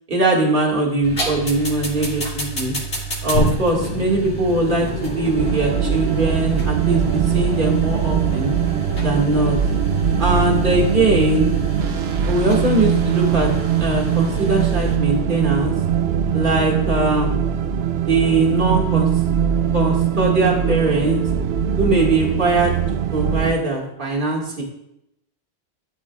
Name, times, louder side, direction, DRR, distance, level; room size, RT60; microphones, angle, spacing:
voice 1, 0.1-2.8 3.2-8.5 9.0-9.6 10.2-11.5 12.2-13.5 13.8-15.7 16.3-17.4 18.1-19.1 19.7-21.2 21.8-22.7 23.1-24.6, right 2 dB, 50° right, -2 dB, 2.2 m, -21 dB
sound 1, 1.0-15.0, right 1 dB, 65° left, 2.8 m, -28 dB
sound 2, 5.4-23.5, right 8 dB, 70° right, 0.8 m, -21 dB
13.5 x 12.5 x 2.4 m, 0.81 s
omnidirectional pair, 1.1 m